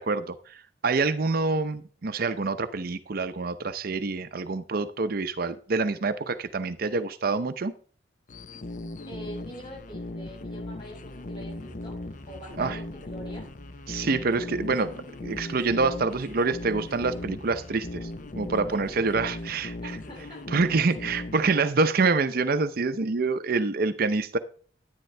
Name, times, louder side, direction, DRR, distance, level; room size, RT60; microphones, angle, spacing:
voice 1, 0.0-7.7 12.6-12.8 13.9-18.1 18.4-20.0 20.5-24.4, right 4 dB, 50° right, 11 dB, 0.6 m, -26 dB
sound 1, 8.3-21.5, left 2 dB, 45° left, 0.6 m, -38 dB
voice 2, 9.1-12.0 12.3-13.5 19.8-20.9, right 1 dB, 25° left, -3 dB, 6.5 m, -44 dB
sound 2, 9.7-20.8, equal, 15° right, 3.5 m, -51 dB
10.5 x 10.0 x 3.3 m, 0.43 s
head